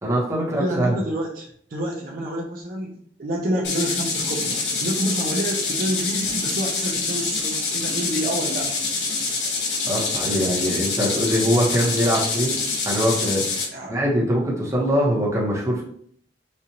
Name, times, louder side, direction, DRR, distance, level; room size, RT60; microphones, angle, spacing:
voice 1, 0.0-0.9 9.9-12.6 12.8-13.4 13.9-15.8, equal, 15° right, -4 dB, 1.0 m, -22 dB
voice 2, 0.6-8.7 9.6-9.7 13.7-14.0, right 1 dB, 55° right, -2 dB, 0.6 m, -28 dB
sound 1, 3.6-13.7, left 4 dB, 75° left, 0.8 m, -26 dB
4.3 x 2.4 x 2.9 m, 0.63 s
head